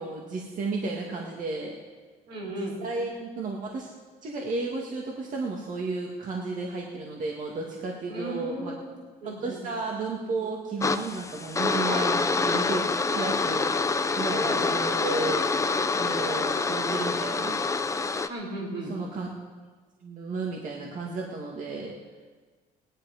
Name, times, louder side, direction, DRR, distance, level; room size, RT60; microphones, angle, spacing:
voice 1, 0.0-1.8 2.5-3.9 4.2-8.7 9.2-12.9 13.1-13.9 14.2-15.4 16.0-17.6 18.9-19.3 20.0-22.0, right 3 dB, 50° right, -1 dB, 1.9 m, -33 dB
voice 2, 2.3-2.8 8.1-8.9 9.2-9.6 11.9-12.1 14.4-14.6 18.3-18.9, right 1 dB, 80° right, -3 dB, 5.9 m, -35 dB
sound 1, 10.8-18.3, left 4 dB, 20° left, 0.7 m, -26 dB
18.0 x 11.0 x 5.0 m, 1.4 s
cardioid pair, 110°, 17 cm